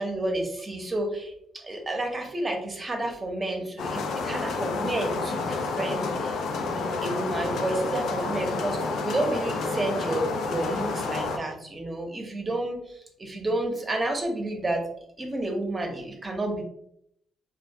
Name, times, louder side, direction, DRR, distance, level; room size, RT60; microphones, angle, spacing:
voice 1, 0.0-14.8 15.2-16.6, right 1 dB, 25° right, 2 dB, 0.6 m, -31 dB
sound 1, 3.8-11.4, left 4 dB, 70° left, 0.3 m, -29 dB
2.4 x 2.1 x 2.6 m, 0.74 s
cardioid pair, 90°, 0 cm